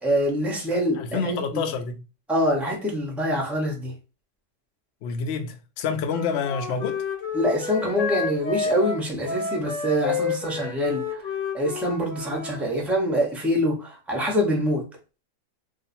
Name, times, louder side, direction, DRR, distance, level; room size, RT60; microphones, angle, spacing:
voice 1, 0.0-1.6 2.3-3.9 7.3-11.3 11.5-14.9, equal, ahead, 0.5 m, -25 dB
voice 2, 1.0-2.0 5.0-7.0, left 5 dB, 80° left, 0.6 m, -28 dB
Wind instrument woodwind instrument, 6.0-12.6, left 5 dB, 55° left, 1.1 m, -30 dB
2.7 x 2.4 x 4.1 m
omnidirectional pair, 1.8 m